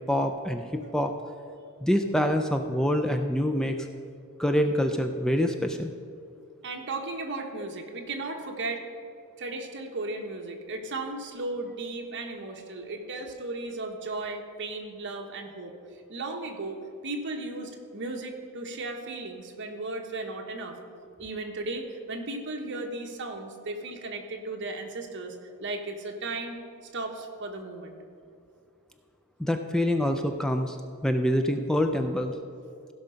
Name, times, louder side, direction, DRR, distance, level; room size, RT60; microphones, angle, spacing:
voice 1, 0.1-1.1 1.8-3.9 4.4-5.9 29.4-30.8 31.0-32.3, equal, 5° left, 5 dB, 0.3 m, -26 dB
voice 2, 6.6-8.9 9.4-15.7 16.1-20.8 21.2-25.3 25.6-26.6 26.9-28.0, right 2 dB, 55° right, 3 dB, 1.2 m, -35 dB
16.0 x 5.6 x 5.1 m, 2.4 s
head